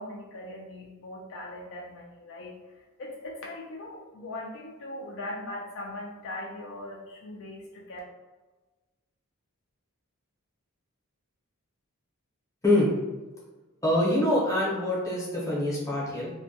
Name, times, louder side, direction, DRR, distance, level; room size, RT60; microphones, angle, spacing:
voice 1, 0.0-2.6 3.0-8.0, left 1 dB, 60° left, -2 dB, 0.4 m, -40 dB
voice 2, 13.8-16.3, left 1 dB, 15° left, -7 dB, 0.7 m, -25 dB
2.1 x 2.1 x 2.7 m, 1.2 s
head